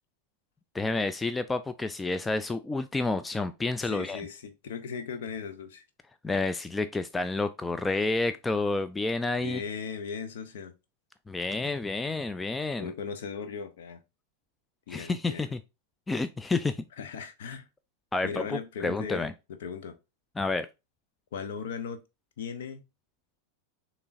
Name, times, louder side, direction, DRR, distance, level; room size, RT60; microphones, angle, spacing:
voice 1, 0.7-4.2 6.2-9.6 11.3-12.9 14.9-15.6 16.1-16.8 18.1-19.3 20.4-20.7, left 3 dB, 10° left, 0.3 m, -29 dB
voice 2, 3.8-5.8 9.3-10.7 12.8-14.0 14.9-15.5 17.0-17.7 18.2-19.3 19.6-19.9 21.3-22.0 22.4-22.8, left 6 dB, 60° left, 0.8 m, -37 dB
6.7 x 3.1 x 2.6 m
figure-of-eight pair, 90°, 0 cm